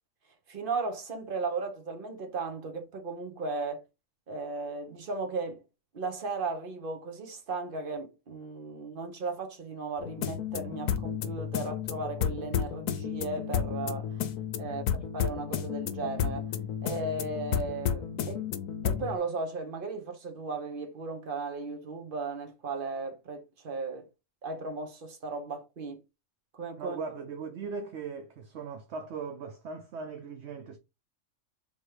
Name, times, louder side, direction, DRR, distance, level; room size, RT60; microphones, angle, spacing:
voice 1, 0.5-3.8 4.3-5.6 5.9-14.1 14.6-14.8 15.1-16.5 16.8-18.5 18.8-24.1 24.4-26.0 26.5-27.0, right 3 dB, 40° right, 1.1 m, -36 dB
sound 1, 10.0-19.2, left 9 dB, 75° left, 1.0 m, -32 dB
voice 2, 26.8-30.8, right 5 dB, 60° right, 0.8 m, -39 dB
3.6 x 3.0 x 4.8 m
omnidirectional pair, 1.5 m